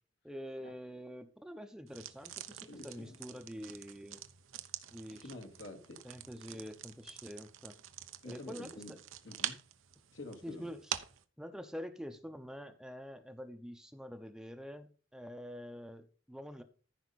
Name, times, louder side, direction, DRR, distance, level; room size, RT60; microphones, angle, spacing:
voice 1, 0.2-4.2 4.9-5.3 6.0-7.8 8.2-9.0 10.4-10.8 11.4-16.6, equal, 5° right, 0.8 m, -46 dB
sound 1, 1.9-11.2, right 11 dB, 90° right, 0.9 m, -46 dB
voice 2, 2.7-3.2 5.1-6.0 8.2-8.9 9.2-9.6 10.1-10.7, left 2 dB, 70° left, 2.2 m, -48 dB
14.0 x 5.7 x 4.1 m
head